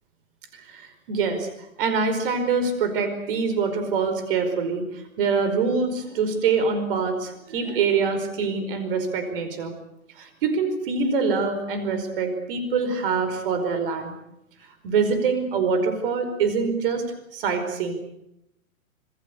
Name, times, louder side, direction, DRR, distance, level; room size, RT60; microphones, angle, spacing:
voice 1, 0.5-1.5 1.8-9.7 10.2-14.1 14.8-17.0 17.3-17.9, right 5 dB, 40° right, 9 dB, 5.0 m, -25 dB
26.5 x 20.5 x 8.5 m, 0.85 s
figure-of-eight pair, 120°, 41 cm